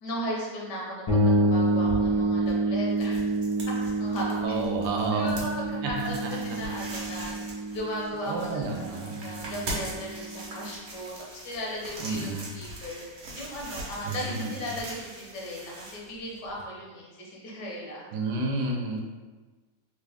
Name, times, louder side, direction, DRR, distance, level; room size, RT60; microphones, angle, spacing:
voice 1, 0.0-3.3 3.8-4.6 5.1-7.3 7.7-18.0, equal, 75° left, -3 dB, 1.4 m, -37 dB
sound 1, 1.1-10.7, right 1 dB, 30° left, 0.6 m, -28 dB
sound 2, 1.5-16.6, right 2 dB, 55° right, 1.0 m, -41 dB
voice 2, 4.4-5.3 5.8-6.7 8.3-9.7 12.0-12.5 14.0-14.6 18.1-19.0, right 3 dB, 80° right, 0 dB, 1.2 m, -31 dB
3.5 x 2.4 x 3.4 m, 1.3 s
omnidirectional pair, 1.8 m